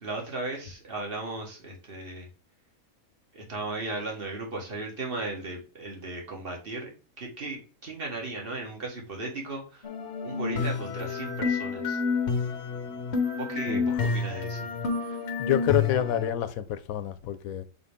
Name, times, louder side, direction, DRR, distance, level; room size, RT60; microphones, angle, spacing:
voice 1, 0.0-2.3 3.3-6.9 7.2-9.8 10.2-12.0 13.3-14.7, right 2 dB, 40° right, 1.9 m, -36 dB
sound 1, 9.8-16.3, left 5 dB, 55° left, 1.2 m, -29 dB
voice 2, 15.4-17.6, left 11 dB, 85° left, 1.1 m, -28 dB
7.0 x 4.1 x 3.5 m
omnidirectional pair, 1.4 m